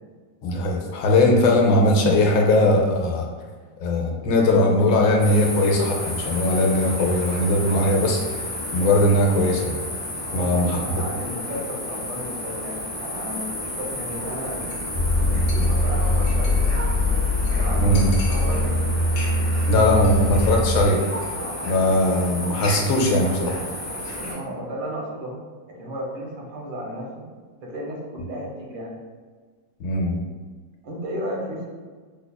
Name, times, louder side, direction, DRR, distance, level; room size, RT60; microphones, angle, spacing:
voice 1, 0.4-3.3 3.8-9.8 10.3-10.8 17.8-18.1 19.7-21.0 21.6-23.6 29.8-30.2, left 1 dB, 80° left, 0 dB, 1.3 m, -20 dB
sound 1, 5.2-24.3, left 1 dB, 15° left, 0.6 m, -32 dB
voice 2, 10.2-14.7 15.2-16.8 17.5-18.9 24.1-25.4 25.8-27.2 27.6-29.0 30.8-31.7, equal, 80° right, -2 dB, 1.5 m, -33 dB
Chink clink, 14.7-14.9 15.1-15.2 15.5-16.8 17.1-17.2 17.4-17.5 17.9-18.8 19.1-19.7 19.9-20.2 20.5-20.8 21.1-21.3, left 2 dB, 65° left, 1.1 m, -40 dB
sound 2, 14.9-20.9, left 1 dB, 45° left, 1.3 m, -22 dB
5.3 x 2.3 x 2.2 m, 1.5 s
omnidirectional pair, 2.0 m